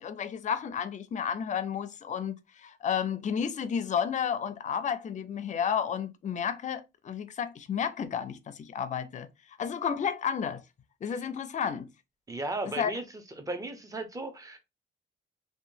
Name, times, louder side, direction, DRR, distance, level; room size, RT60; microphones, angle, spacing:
voice 1, 0.0-9.3 9.6-10.6 11.0-11.9 12.8-12.9, left 7 dB, 40° left, 0.4 m, -32 dB
voice 2, 12.3-13.0 13.4-14.6, right 2 dB, 15° right, 0.7 m, -35 dB
2.8 x 2.3 x 2.6 m
cardioid pair, 90°, 20 cm